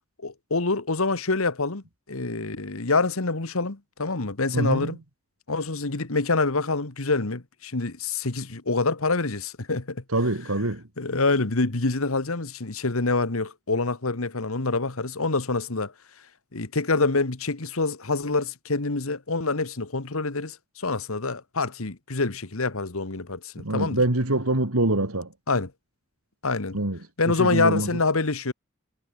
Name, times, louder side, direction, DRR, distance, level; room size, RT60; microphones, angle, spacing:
voice 1, 0.2-5.0 5.5-10.0 11.0-15.9 16.5-24.0 25.5-25.7 26.4-26.8 27.2-28.5, left 3 dB, 80° left, 1.6 m, -26 dB
voice 2, 4.5-4.9 10.1-10.8 23.6-25.3 26.7-27.0 27.3-27.9, right 2 dB, 90° right, 2.8 m, -24 dB
head